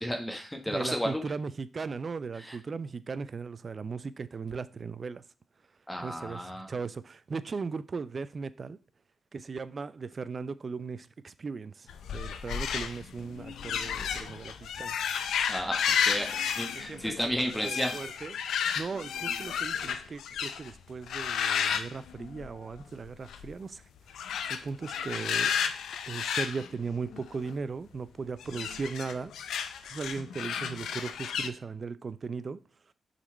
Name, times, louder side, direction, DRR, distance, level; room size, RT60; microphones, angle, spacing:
voice 1, 0.0-1.2 2.3-2.6 5.9-6.7 15.5-18.0, equal, 10° left, 1.2 m, -33 dB
voice 2, 0.7-5.2 6.0-8.8 9.3-11.9 12.1-14.9 16.7-17.1 17.5-18.3 18.8-23.8 24.5-25.5 26.1-29.3 29.9-32.6, right 4 dB, 50° right, 0.5 m, -37 dB
sound 1, 11.9-20.7 21.1-22.8 23.0-23.5 24.1-27.5 28.4-31.5, left 7 dB, 80° left, 0.5 m, -32 dB
5.8 x 4.1 x 4.4 m
supercardioid pair, 55°, 0 cm